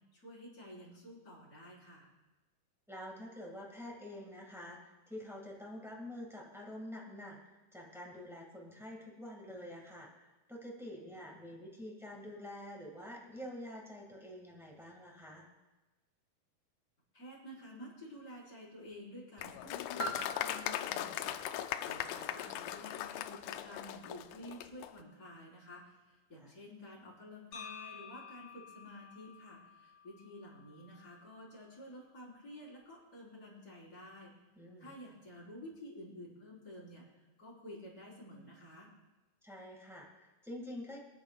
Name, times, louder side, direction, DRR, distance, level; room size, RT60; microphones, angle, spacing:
voice 1, 0.1-2.1 17.1-34.3 34.8-38.9, left 1 dB, 25° left, -6 dB, 4.5 m, -51 dB
voice 2, 2.9-7.4 7.7-15.5 26.3-26.5 34.5-34.9 39.4-41.0, left 1 dB, 5° right, -2 dB, 0.4 m, -47 dB
Applause, 19.4-24.9, left 12 dB, 85° left, 1.8 m, -39 dB
Piano, 20.0-25.4 26.2-26.3, right 2 dB, 55° right, 2.6 m, -48 dB
sound 1, 27.5-31.6, left 6 dB, 70° left, 3.1 m, -52 dB
26.5 x 10.0 x 2.4 m, 1.1 s
omnidirectional pair, 4.1 m